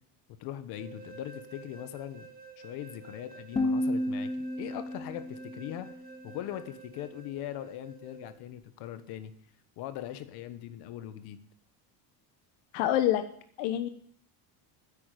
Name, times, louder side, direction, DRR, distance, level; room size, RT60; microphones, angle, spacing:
voice 1, 0.4-2.3 2.6-4.3 4.6-5.9 6.2-9.3 9.8-11.4, left 12 dB, 55° left, 11 dB, 1.3 m, -40 dB
sound 1, 0.7-8.4, right 5 dB, 20° right, 1.2 m, -51 dB
sound 2, 3.6-6.6, left 1 dB, 15° left, 0.8 m, -32 dB
voice 2, 12.7-13.2 13.6-13.9, left 12 dB, 70° left, 9 dB, 1.0 m, -26 dB
10.0 x 8.6 x 9.1 m, 0.62 s
cardioid pair, 180°, 47 cm